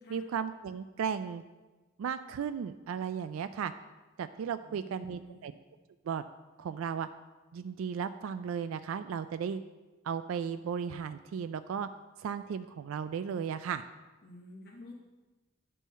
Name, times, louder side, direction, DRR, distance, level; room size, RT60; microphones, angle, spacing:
voice 1, 0.1-1.4 2.0-3.7 4.2-5.5 6.1-6.2 6.6-7.1 7.5-9.6 10.0-11.9 12.2-13.8, right 7 dB, 90° right, 11 dB, 0.3 m, -35 dB
voice 2, 4.6-5.5 14.2-14.9, left 2 dB, 50° left, -3 dB, 1.0 m, -51 dB
9.3 x 5.5 x 4.2 m, 1.2 s
head